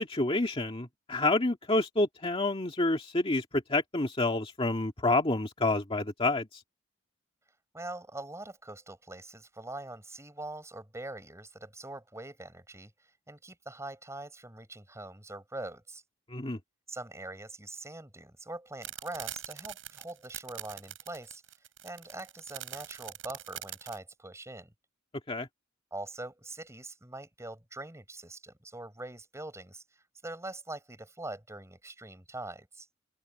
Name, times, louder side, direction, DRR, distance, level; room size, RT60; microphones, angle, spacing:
voice 1, 0.0-6.6 16.3-16.6 25.3-25.5, left 2 dB, 30° left, 2.0 m, -28 dB
voice 2, 7.7-12.9 13.3-16.0 16.9-21.4 21.8-24.7 25.9-32.9, right 2 dB, 15° right, 5.8 m, -43 dB
sound 1, 18.8-24.0, right 12 dB, 85° right, 6.9 m, -42 dB
open air
head